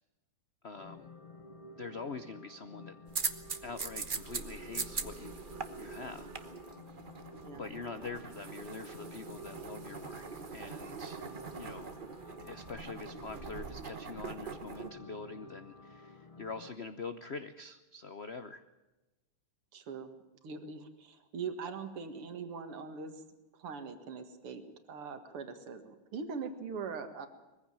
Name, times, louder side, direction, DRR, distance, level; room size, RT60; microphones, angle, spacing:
voice 1, 0.6-1.1 1.8-3.0 3.6-5.4 5.8-6.3 7.5-10.2 10.5-11.2 11.6-12.0 12.4-18.6, left 4 dB, 70° left, 11 dB, 0.6 m, -44 dB
sound 1, 0.8-16.7, left 1 dB, 30° left, 0.6 m, -52 dB
sound 2, 3.1-14.9, right 5 dB, 35° right, 0.9 m, -42 dB
voice 2, 19.7-20.2 20.4-23.2 23.6-24.6 24.9-27.3, right 5 dB, 80° right, 8 dB, 2.7 m, -41 dB
21.5 x 15.5 x 8.9 m, 1.1 s
omnidirectional pair, 2.4 m